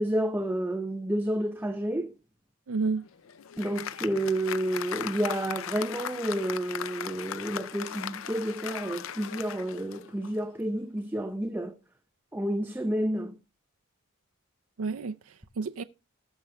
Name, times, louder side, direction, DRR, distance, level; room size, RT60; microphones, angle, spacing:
voice 1, 0.0-2.1 3.6-11.8 12.3-13.4, right 1 dB, 10° right, 0.6 m, -30 dB
voice 2, 2.7-3.1 14.8-15.8, right 4 dB, 75° right, 0.5 m, -31 dB
Applause, 3.0-10.5, left 9 dB, 65° left, 0.4 m, -38 dB
19.0 x 6.5 x 2.3 m
head